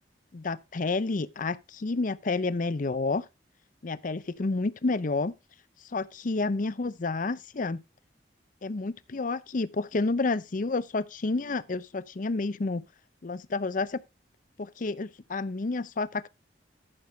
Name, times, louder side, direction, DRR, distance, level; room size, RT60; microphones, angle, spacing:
voice 1, 0.3-3.3 3.8-5.3 5.9-7.8 8.6-12.8 13.2-14.0 14.6-16.3, left 3 dB, 45° left, 0.6 m, -30 dB
13.5 x 6.7 x 3.3 m
head